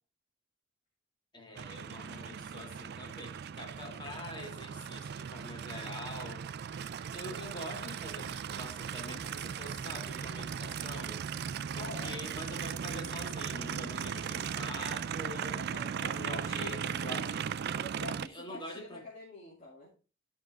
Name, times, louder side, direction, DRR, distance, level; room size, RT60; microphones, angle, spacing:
voice 1, 1.3-6.7 7.1-11.3 11.7-15.6 16.0-17.4 18.2-19.1, left 1 dB, 25° left, 1.8 m, -45 dB
Aircraft, 1.6-18.3, right 7 dB, 55° right, 0.4 m, -38 dB
voice 2, 11.8-12.2 15.5-17.2 17.8-19.9, left 2 dB, 40° left, 2.7 m, -46 dB
12.5 x 5.4 x 3.6 m
head